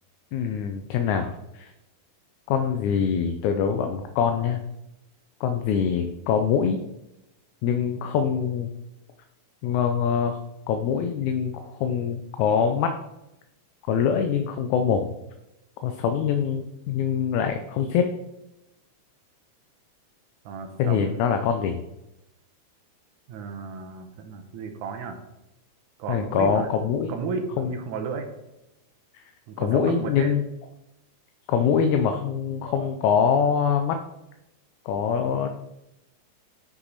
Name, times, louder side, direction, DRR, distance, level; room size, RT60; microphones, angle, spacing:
voice 1, 0.3-1.7 2.5-4.6 5.4-6.8 7.6-8.7 9.6-10.4 10.7-12.9 13.9-15.1 15.8-18.1 20.8-21.8 26.1-27.1 27.6-27.7 29.1-29.2 29.6-30.4 31.5-34.0 34.9-35.5, left 7 dB, 80° left, 6 dB, 1.9 m, -24 dB
voice 2, 20.5-21.2 23.3-25.2 26.0-26.7 27.1-28.3 29.5-30.3, right 5 dB, 75° right, 5 dB, 2.4 m, -33 dB
8.0 x 5.9 x 4.0 m, 0.90 s
omnidirectional pair, 3.6 m